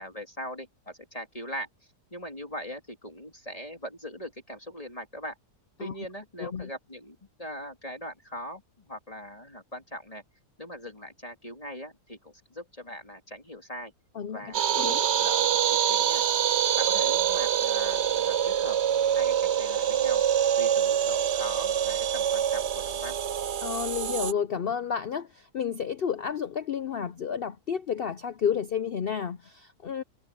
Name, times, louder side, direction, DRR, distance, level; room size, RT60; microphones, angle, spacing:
voice 1, 0.0-1.7 2.1-5.3 5.8-10.2 10.6-13.9 14.3-16.2 16.8-18.8 19.1-20.2 20.6-23.2, equal, 20° left, 2.9 m, -41 dB
voice 2, 6.4-6.7 14.1-14.4 14.7-15.0 23.6-30.0, left 7 dB, 70° left, 0.5 m, -31 dB
sound 1, 14.5-24.3, right 9 dB, 55° right, 0.8 m, -25 dB
omnidirectional pair, 1.7 m